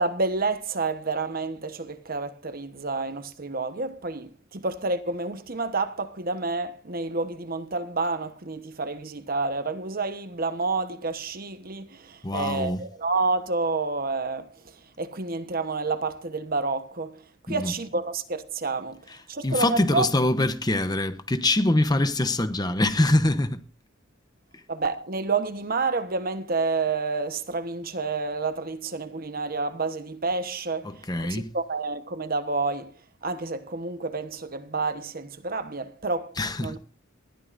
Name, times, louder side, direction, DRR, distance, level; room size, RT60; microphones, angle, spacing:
voice 1, 0.0-19.0 19.3-20.1 24.7-32.9 33.2-36.8, right 3 dB, 45° right, 1.1 m, -29 dB
voice 2, 12.2-12.8 17.5-17.7 19.4-23.6 30.8-31.5 36.4-36.8, left 1 dB, 20° left, 0.9 m, -24 dB
20.0 x 13.5 x 2.6 m
head